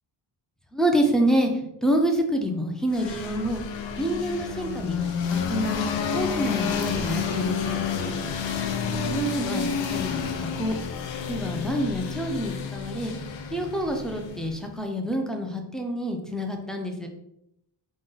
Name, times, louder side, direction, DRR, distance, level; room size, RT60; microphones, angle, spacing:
voice 1, 0.7-1.5 1.8-3.6 4.0-5.9 6.1-7.8 9.1-10.8 11.3-13.1 13.5-17.1, equal, ahead, 2 dB, 0.4 m, -27 dB
sound 1, 2.9-14.7, left 6 dB, 85° left, 0.7 m, -30 dB
5.1 x 2.3 x 3.8 m, 0.82 s
wide cardioid pair, 160°, 44 cm